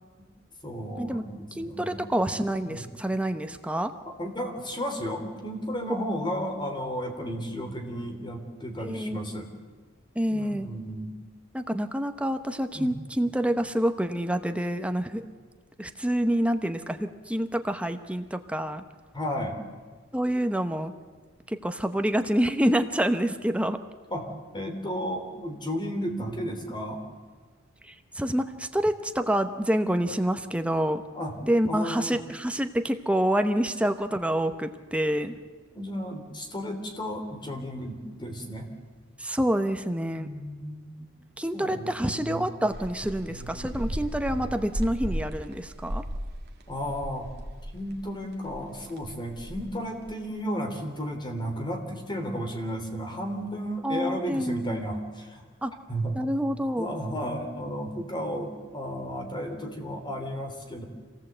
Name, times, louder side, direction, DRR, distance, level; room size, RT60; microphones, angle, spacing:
voice 1, 0.6-2.1 2.7-2.9 4.0-9.5 10.3-11.1 12.8-13.0 19.1-19.6 24.1-27.0 31.1-31.4 31.7-32.2 35.7-38.7 40.2-41.0 41.5-42.5 43.3-43.8 46.7-47.3 47.7-55.4 55.9-56.2 56.8-60.8, equal, 20° left, 4 dB, 3.1 m, -33 dB
voice 2, 1.6-3.9 5.9-6.0 8.8-9.2 10.1-10.7 11.5-15.3 15.8-18.8 20.1-20.9 21.5-23.8 27.8-31.0 31.4-35.3 39.2-40.3 41.4-46.0 53.8-54.8 55.6-55.7 56.1-56.9, equal, 5° right, 7 dB, 0.9 m, -27 dB
sound 1, 42.7-48.1 48.4-50.1, equal, 55° right, 2.1 m, -36 dB
26.0 x 18.0 x 8.0 m, 1.4 s
head